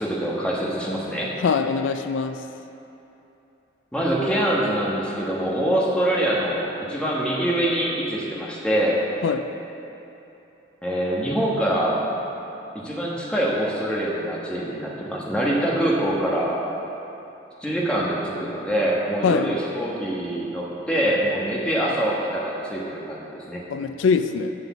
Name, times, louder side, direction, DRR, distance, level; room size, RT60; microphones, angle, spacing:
voice 1, 0.0-1.3 3.9-9.0 10.8-12.0 12.7-16.6 17.6-23.6, right 1 dB, 5° left, -5 dB, 1.3 m, -24 dB
voice 2, 1.4-2.4 9.2-9.5 19.2-19.5 23.7-24.5, left 5 dB, 85° left, 10 dB, 0.4 m, -22 dB
7.6 x 7.0 x 7.0 m, 2.9 s
head